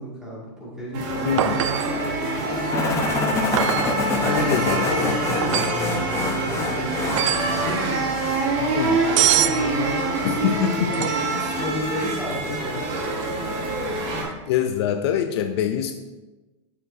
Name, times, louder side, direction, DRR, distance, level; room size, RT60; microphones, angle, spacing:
voice 1, 0.0-14.3, equal, 5° right, -7 dB, 2.0 m, -33 dB
sound 1, 0.9-14.2, right 2 dB, 45° right, 1.4 m, -26 dB
voice 2, 1.2-1.6 4.5-5.2 8.7-9.0 10.2-11.1 14.5-15.9, left 9 dB, 55° left, 7 dB, 0.4 m, -24 dB
sound 2, 1.4-2.0 3.5-4.0 5.4-5.8 7.1-7.6 9.2-9.6 10.9-11.4 14.2-14.3, right 12 dB, 90° right, 0.4 m, -23 dB
sound 3, 2.7-8.5, left 3 dB, 15° left, 0.7 m, -27 dB
6.9 x 6.4 x 2.6 m, 1.2 s
supercardioid pair, 150°, 16 cm